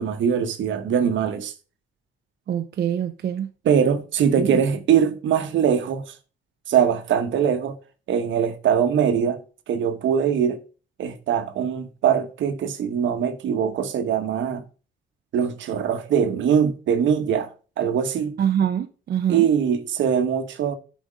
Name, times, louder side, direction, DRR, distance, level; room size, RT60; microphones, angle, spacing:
voice 1, 0.0-1.5 3.6-6.1 6.7-7.8 8.1-9.4 9.7-10.6 11.0-14.6 15.3-17.5 17.8-18.4 19.3-20.8, right 8 dB, 70° right, 1.2 m, -22 dB
voice 2, 2.5-3.5 4.4-4.6 18.4-19.5, right 9 dB, 55° right, 0.7 m, -24 dB
9.0 x 5.1 x 5.0 m
cardioid pair, 90°, 20 cm